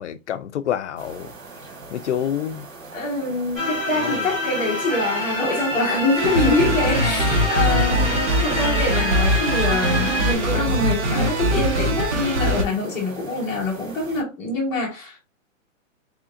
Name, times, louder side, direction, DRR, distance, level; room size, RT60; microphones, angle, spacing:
voice 1, 0.0-1.3 1.9-2.7 3.9-4.3 7.9-8.4, left 9 dB, 60° left, 0.5 m, -28 dB
sound 1, 1.0-14.2, right 3 dB, 90° right, 1.7 m, -41 dB
voice 2, 2.9-15.2, left 2 dB, 5° left, 1.2 m, -25 dB
sound 2, 3.5-10.3, left 1 dB, 15° right, 1.5 m, -27 dB
sound 3, 6.2-12.6, equal, 55° right, 1.0 m, -22 dB
3.7 x 3.6 x 2.5 m
hypercardioid pair, 175°, 40 cm